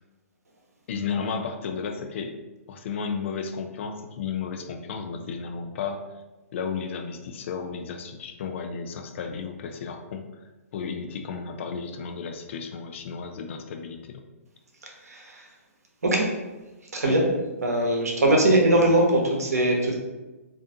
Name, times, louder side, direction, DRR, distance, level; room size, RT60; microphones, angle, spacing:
voice 1, 0.9-2.3 2.7-6.0 6.5-10.2 10.7-14.2 17.0-17.1 18.4-18.5, left 6 dB, 50° left, 5 dB, 0.3 m, -33 dB
voice 2, 14.8-15.4 16.0-16.3 16.9-17.2 17.6-19.9, right 1 dB, 80° right, 0 dB, 0.7 m, -21 dB
2.4 x 2.3 x 2.5 m, 1.1 s
hypercardioid pair, 125°, 8 cm